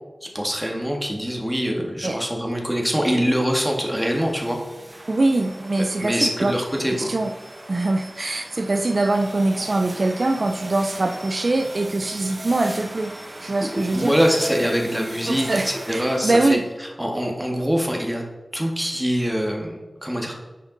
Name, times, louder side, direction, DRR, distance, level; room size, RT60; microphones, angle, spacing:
voice 1, 0.2-4.6 6.0-7.1 13.6-18.2 18.5-20.3, equal, 5° right, 0 dB, 1.8 m, -24 dB
sound 1, 3.5-16.7, right 1 dB, 35° right, 1.1 m, -39 dB
voice 2, 5.1-6.5 7.0-7.3 7.7-13.1 13.4-14.1 15.2-16.6, right 2 dB, 60° right, 5 dB, 0.5 m, -23 dB
7.6 x 5.1 x 3.9 m, 1.1 s
cardioid pair, 40°, 0 cm